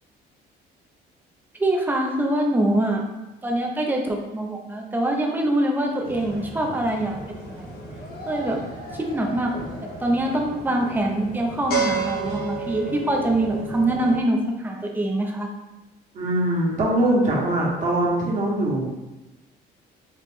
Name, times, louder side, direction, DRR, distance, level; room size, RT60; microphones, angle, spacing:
voice 1, 1.6-3.0 3.4-7.8 8.3-9.5 10.0-15.5, right 1 dB, 10° right, 0 dB, 0.6 m, -24 dB
sound 1, 6.0-14.2, right 3 dB, 65° left, 1.0 m, -32 dB
voice 2, 16.1-18.9, right 1 dB, 45° right, -4 dB, 1.4 m, -22 dB
4.2 x 2.4 x 3.5 m, 1.0 s
cardioid pair, 110°, 17 cm